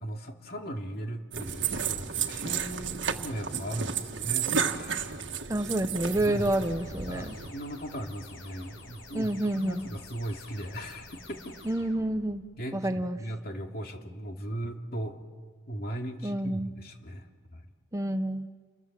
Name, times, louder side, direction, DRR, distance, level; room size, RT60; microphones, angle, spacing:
voice 1, 0.0-5.2 6.2-6.5 7.1-11.6 12.6-15.2 15.7-17.3 17.5-17.6, right 1 dB, 50° left, 3 dB, 2.5 m, -38 dB
sound 1, 1.3-7.5, right 7 dB, 65° right, 1.6 m, -32 dB
voice 2, 5.5-7.3 9.1-9.9 11.7-12.5 12.7-13.2 16.2-16.7 17.9-18.5, right 1 dB, 15° right, 9 dB, 0.7 m, -29 dB
sound 2, 5.7-12.5, left 2 dB, 75° left, 4.4 m, -49 dB
30.0 x 22.0 x 7.4 m, 1.5 s
head